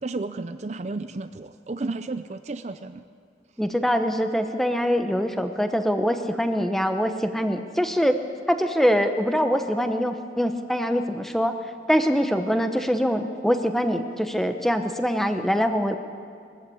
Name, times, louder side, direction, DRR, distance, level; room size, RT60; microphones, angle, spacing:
voice 1, 0.0-3.0, right 3 dB, 40° right, 10 dB, 0.5 m, -32 dB
voice 2, 3.6-8.2 8.5-11.5 11.9-16.0, equal, ahead, 7 dB, 0.9 m, -23 dB
21.5 x 14.5 x 8.6 m, 2.3 s
head